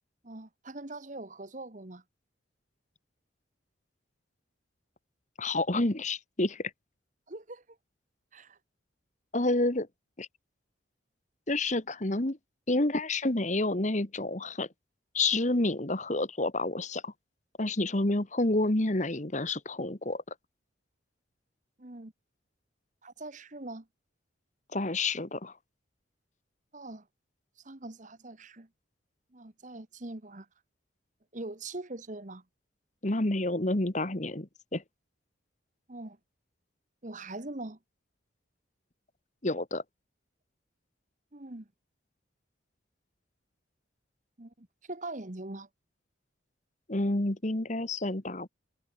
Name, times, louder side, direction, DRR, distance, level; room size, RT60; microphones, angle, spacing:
voice 1, 0.2-2.0 7.3-7.6 8.3-8.6 21.8-22.1 23.0-23.9 26.7-27.1 27.6-28.7 29.3-30.5 31.3-32.4 35.9-36.2 37.0-37.8 41.3-41.7 44.4-45.7, right 2 dB, 40° right, 1.4 m, -42 dB
voice 2, 5.4-6.7 9.3-9.9 10.2-10.3 11.5-12.4 12.7-14.7 15.1-17.1 17.6-20.2 24.7-25.5 33.0-34.8 39.4-39.8 46.9-48.5, left 2 dB, 40° left, 1.5 m, -29 dB
head